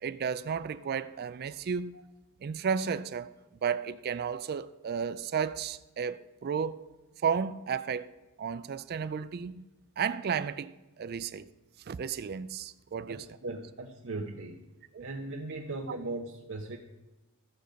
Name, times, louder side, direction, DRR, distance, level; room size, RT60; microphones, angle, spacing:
voice 1, 0.0-1.9 2.4-3.3 3.6-6.9 7.2-8.1 8.4-9.6 10.0-10.7 11.0-11.5 11.9-13.2 14.9-15.1, right 6 dB, 45° right, 0.4 m, -33 dB
voice 2, 13.1-14.6 15.0-16.8, right 2 dB, 60° right, 0.8 m, -38 dB
14.5 x 6.7 x 5.1 m
head